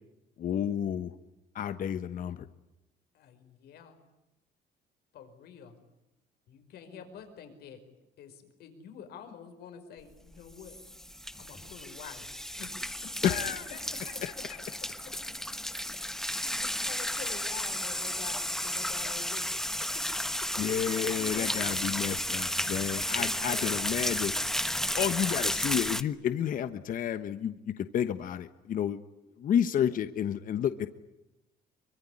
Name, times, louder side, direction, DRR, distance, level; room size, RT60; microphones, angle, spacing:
voice 1, 0.4-1.1 1.5-2.5 13.2-13.6 14.2-14.6 20.6-24.3 24.8-29.0 29.4-30.9, left 9 dB, 55° left, 11 dB, 1.2 m, -31 dB
voice 2, 3.1-4.0 5.1-5.7 6.5-10.8 11.4-12.3 12.6-13.1 13.9-14.6 15.0-15.1 15.9-16.0 16.3-19.7 19.9-20.1 20.4-21.8 23.1-23.8, left 7 dB, 70° left, 7 dB, 5.2 m, -48 dB
sound 1, 10.3-26.0, left 1 dB, ahead, 1.2 m, -33 dB
24.5 x 23.5 x 9.9 m, 0.95 s
cardioid pair, 110°, 17 cm